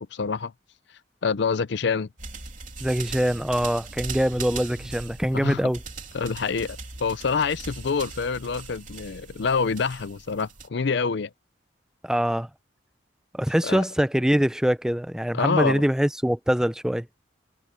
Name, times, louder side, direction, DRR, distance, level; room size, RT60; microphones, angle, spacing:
voice 1, 0.1-0.5 1.2-2.1 5.3-5.7 6.1-11.3 13.6-13.8 15.3-15.8, left 5 dB, 65° left, 0.5 m, -26 dB
sound 1, 2.2-10.7, right 4 dB, 45° right, 3.1 m, -39 dB
voice 2, 2.8-5.8 12.0-12.5 13.3-17.1, equal, 5° right, 0.5 m, -23 dB
head